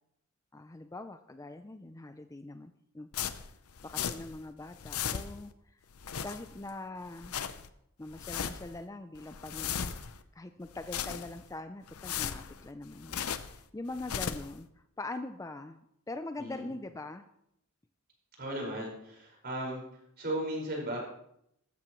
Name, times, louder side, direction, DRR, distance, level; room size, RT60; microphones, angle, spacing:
voice 1, 0.5-3.1 3.8-5.8 6.2-7.3 8.0-10.0 10.3-14.7 15.0-15.8 16.1-17.3, left 2 dB, 15° left, 9 dB, 0.4 m, -43 dB
sound 1, 3.1-4.4 4.7-5.5 5.9-6.7 7.1-7.7 8.1-8.8 9.2-10.2 10.7-11.5 11.9-13.6 13.9-14.6, left 8 dB, 85° left, 0.7 m, -37 dB
voice 2, 16.4-16.7 18.4-19.8 20.2-21.1, right 1 dB, 45° right, -2 dB, 5.1 m, -36 dB
14.5 x 13.0 x 3.1 m, 0.76 s
head